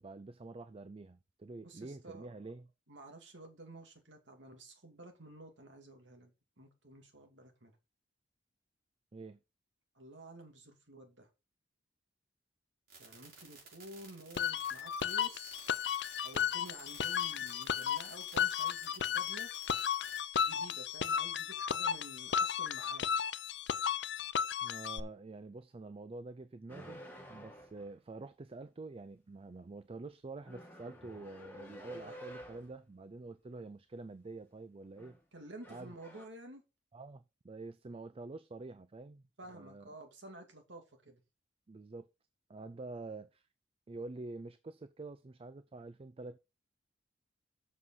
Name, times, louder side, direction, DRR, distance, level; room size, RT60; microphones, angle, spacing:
voice 1, 0.0-2.7 9.1-9.4 24.6-27.0 27.3-35.2 35.7-35.9 36.9-39.2 39.5-39.9 41.7-42.1 42.5-43.5 43.9-46.4, right 3 dB, 30° right, 0.4 m, -47 dB
voice 2, 1.6-2.3 2.9-7.7 9.9-11.3 13.0-15.6 16.2-19.5 20.5-23.1 31.9-32.2 35.3-36.6 39.4-41.2, right 1 dB, 75° right, 2.6 m, -52 dB
sound 1, 12.9-20.2, right 5 dB, 50° right, 4.9 m, -55 dB
sound 2, 14.4-25.0, left 8 dB, 65° left, 0.6 m, -34 dB
sound 3, 26.7-28.0 30.4-32.8 34.8-35.2 35.6-36.2, equal, 10° left, 2.4 m, -51 dB
7.5 x 6.1 x 5.6 m
head